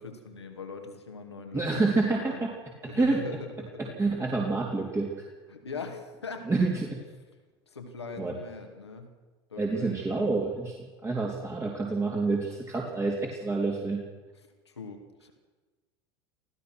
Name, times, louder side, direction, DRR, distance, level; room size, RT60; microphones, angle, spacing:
voice 1, 0.0-2.5 2.9-4.3 5.5-6.5 7.7-9.1 9.5-10.3 14.7-15.3, left 4 dB, 85° left, 4 dB, 2.5 m, -41 dB
voice 2, 1.5-2.5 2.9-3.2 4.0-5.1 6.5-7.0 8.2-8.3 9.6-14.0, right 3 dB, 20° right, -2 dB, 3.4 m, -28 dB
26.5 x 16.0 x 6.3 m, 1.3 s
figure-of-eight pair, 70°, 14 cm